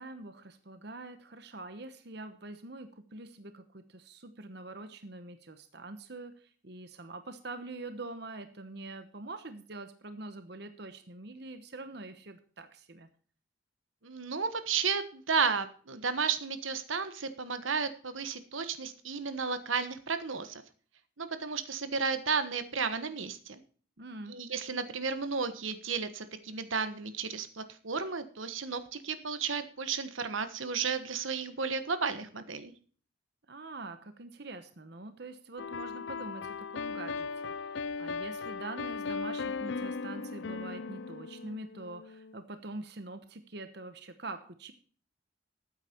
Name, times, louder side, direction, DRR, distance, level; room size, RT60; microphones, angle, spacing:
voice 1, 0.0-13.1 24.0-24.4 33.5-44.7, right 2 dB, 55° right, 9 dB, 1.0 m, -44 dB
voice 2, 14.0-20.6 21.2-23.6 24.3-32.7, right 5 dB, 80° right, 11 dB, 1.3 m, -33 dB
sound 1, 35.6-42.4, left 4 dB, 65° left, 0.4 m, -38 dB
14.0 x 9.1 x 4.4 m, 0.43 s
head